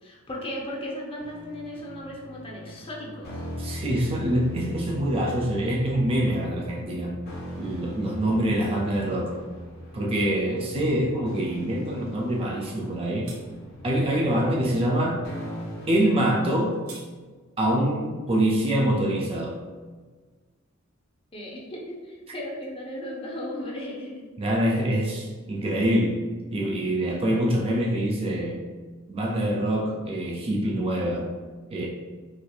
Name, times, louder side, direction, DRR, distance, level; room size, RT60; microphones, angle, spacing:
voice 1, 0.0-3.4 21.3-24.3, left 1 dB, 25° left, -3 dB, 0.7 m, -36 dB
sound 1, 1.2-16.0, equal, 50° left, 1.1 m, -40 dB
voice 2, 3.6-7.2 7.6-9.4 9.9-13.3 13.8-15.3 15.9-16.8 17.6-19.6 24.4-26.2 26.5-28.6 29.1-31.3 31.7-31.9, right 1 dB, 25° right, -2 dB, 0.4 m, -25 dB
sound 2, 12.7-12.9 13.2-13.4 16.4-17.1, right 3 dB, 85° right, 0.6 m, -45 dB
4.2 x 2.5 x 2.3 m, 1.4 s
head